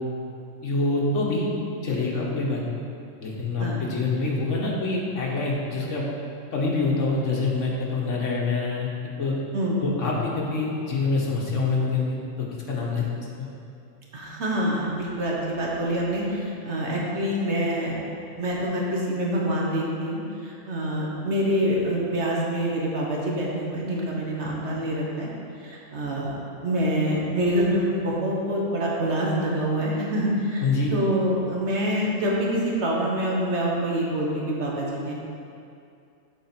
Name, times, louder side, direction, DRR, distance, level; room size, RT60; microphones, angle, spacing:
voice 1, 0.6-1.5 1.8-2.6 3.2-6.0 6.5-8.9 9.2-9.3 9.8-12.2 12.7-13.0 13.4-13.5 30.6-30.9, left 3 dB, 70° left, -3 dB, 1.5 m, -25 dB
voice 2, 14.1-18.0 18.4-25.3 25.6-26.4 26.6-35.1, equal, 60° right, -3 dB, 1.4 m, -26 dB
7.4 x 4.8 x 4.4 m, 2.5 s
omnidirectional pair, 1.3 m